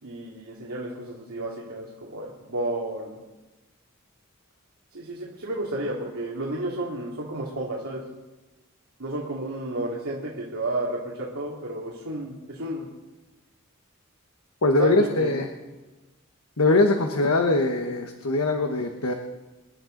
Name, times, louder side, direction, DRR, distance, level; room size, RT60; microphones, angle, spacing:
voice 1, 0.0-3.2 4.9-8.0 9.0-12.9 14.8-15.3 16.7-16.8, right 1 dB, 85° right, -4 dB, 2.6 m, -32 dB
voice 2, 14.6-15.5 16.6-19.1, left 2 dB, 90° left, 4 dB, 1.2 m, -22 dB
27.0 x 11.0 x 3.9 m, 1.1 s
head